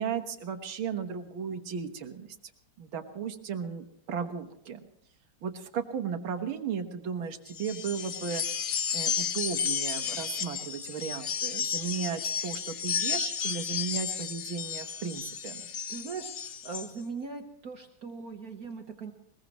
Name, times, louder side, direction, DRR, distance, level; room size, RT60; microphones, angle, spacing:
voice 1, 0.0-2.4 2.8-4.8 5.4-8.4 8.9-15.6, right 7 dB, 90° right, 6 dB, 2.2 m, -35 dB
sound 1, 7.5-16.9, left 7 dB, 65° left, 0.7 m, -33 dB
voice 2, 15.6-19.1, right 5 dB, 50° right, 3 dB, 1.5 m, -40 dB
21.5 x 21.0 x 3.1 m, 0.70 s
omnidirectional pair, 2.2 m